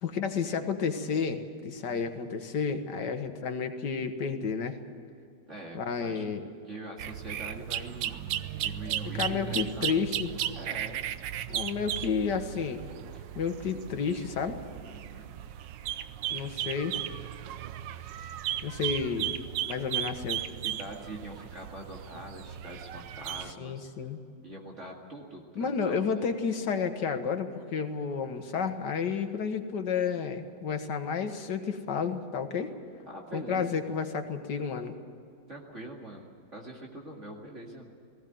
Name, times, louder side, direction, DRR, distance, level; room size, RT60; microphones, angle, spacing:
voice 1, 0.0-4.8 5.7-6.5 9.1-10.3 11.5-12.8 13.4-14.6 16.3-17.0 18.6-19.4 19.7-20.4 23.6-24.2 25.6-32.7 33.3-35.0, left 6 dB, 60° left, 6 dB, 2.0 m, -31 dB
voice 2, 3.0-3.4 5.5-6.2 6.7-8.2 8.6-9.9 10.5-11.1 13.1-13.2 14.8-15.4 20.6-23.9 24.4-26.1 33.1-33.9 35.5-37.9, right 1 dB, 35° right, -1 dB, 2.5 m, -44 dB
sound 1, 7.0-23.5, right 11 dB, 75° right, 1.3 m, -36 dB
19.0 x 16.5 x 9.3 m, 2.4 s
omnidirectional pair, 2.1 m